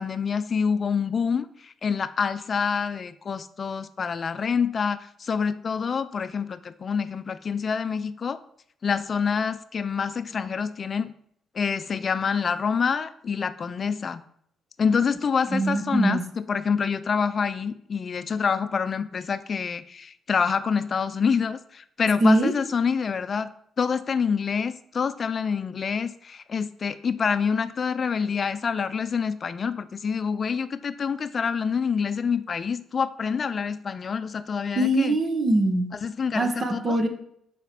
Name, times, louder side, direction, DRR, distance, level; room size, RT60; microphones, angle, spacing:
voice 1, 0.0-8.4 8.8-11.1 11.5-14.2 14.8-23.5 23.8-35.2 35.9-37.0, left 6 dB, 45° left, 14 dB, 0.5 m, -27 dB
voice 2, 15.5-16.2 22.2-22.5 34.8-35.9 36.3-37.1, right 1 dB, 40° right, 6 dB, 1.4 m, -22 dB
7.1 x 5.0 x 6.0 m, 0.69 s
cardioid pair, 90°, 0 cm